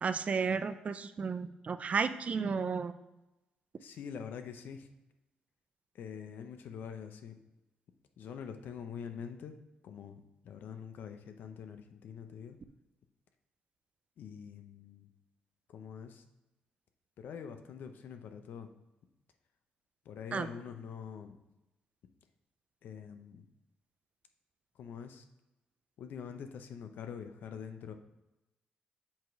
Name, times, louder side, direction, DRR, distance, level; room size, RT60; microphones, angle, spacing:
voice 1, 0.0-2.9 20.3-20.5, right 5 dB, 45° right, 12 dB, 0.4 m, -33 dB
voice 2, 3.8-4.9 5.9-7.3 8.2-9.6 9.8-12.6 14.2-15.1 15.7-16.2 17.2-18.7 20.0-21.4 22.8-23.5 24.8-25.3 26.0-27.9, left 7 dB, 75° left, 8 dB, 0.6 m, -45 dB
7.4 x 3.1 x 4.6 m, 0.98 s
cardioid pair, 80°, 3 cm